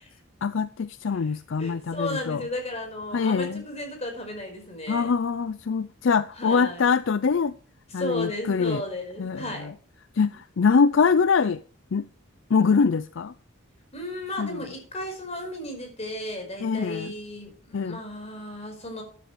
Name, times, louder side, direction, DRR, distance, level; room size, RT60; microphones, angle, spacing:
voice 1, 0.4-2.5 3.1-3.6 4.9-7.6 7.9-8.8 9.2-9.7 10.1-11.6 11.9-12.1 12.5-13.3 14.4-14.6 16.6-17.1 17.7-18.0, left 5 dB, 60° left, 0.4 m, -24 dB
voice 2, 1.6-5.1 6.4-6.9 8.0-9.7 10.3-10.4 13.9-19.0, left 1 dB, 30° left, 4.9 m, -34 dB
13.5 x 10.5 x 3.3 m
head